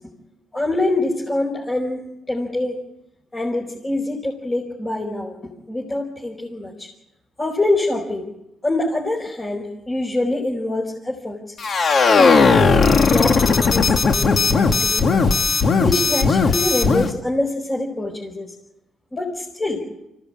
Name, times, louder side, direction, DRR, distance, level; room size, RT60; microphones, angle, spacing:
voice 1, 0.5-2.0 2.3-2.8 3.3-6.9 7.4-8.3 8.6-11.5 12.1-12.7 13.1-15.2 15.8-18.5 19.1-19.8, left 2 dB, 20° left, -2 dB, 4.8 m, -25 dB
sound 1, 11.6-17.1, left 4 dB, 45° left, 2.1 m, -16 dB
25.0 x 17.0 x 8.9 m, 0.88 s
cardioid pair, 100°, 0 cm